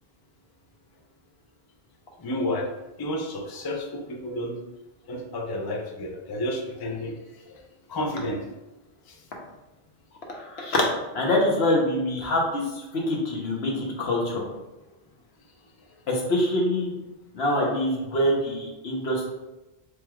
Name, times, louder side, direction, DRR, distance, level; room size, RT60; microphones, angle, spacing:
voice 1, 2.2-2.7 3.0-4.6 5.1-7.2 7.4-7.5 7.9-8.5 9.1-9.2, left 1 dB, 35° left, 2 dB, 0.3 m, -31 dB
voice 2, 10.3-10.8 11.1-14.4 16.1-16.9 17.3-19.4, left 1 dB, 85° left, -1 dB, 1.1 m, -25 dB
4.5 x 3.2 x 2.3 m, 0.99 s
omnidirectional pair, 1.0 m